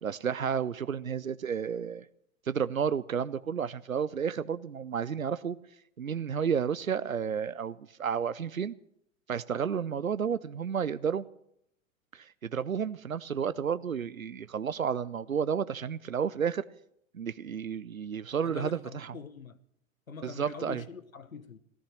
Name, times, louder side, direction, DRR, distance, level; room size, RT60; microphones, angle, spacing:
voice 1, 0.0-2.1 2.5-5.6 6.0-8.7 9.3-11.2 12.1-16.6 17.1-19.1 20.2-20.8, right 7 dB, 85° right, 0.6 m, -31 dB
voice 2, 18.4-19.6 20.1-21.6, left 5 dB, 80° left, 1.2 m, -44 dB
15.0 x 14.0 x 6.2 m
figure-of-eight pair, 90°, 40 cm